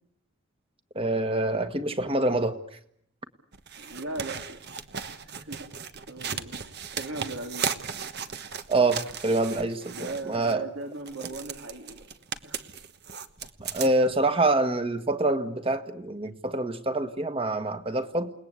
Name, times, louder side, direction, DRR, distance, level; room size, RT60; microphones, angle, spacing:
voice 1, 0.9-2.6 8.7-10.6 13.6-18.3, right 2 dB, 25° right, 8 dB, 1.6 m, -26 dB
sound 1, 3.5-10.6 11.0-14.2 14.5-14.6, right 7 dB, 55° right, 1.3 m, -36 dB
voice 2, 3.8-4.6 5.1-5.7 6.1-7.7 9.9-12.1 12.4-12.6, right 2 dB, 80° right, 3 dB, 3.7 m, -38 dB
29.0 x 19.5 x 8.3 m, 0.73 s
head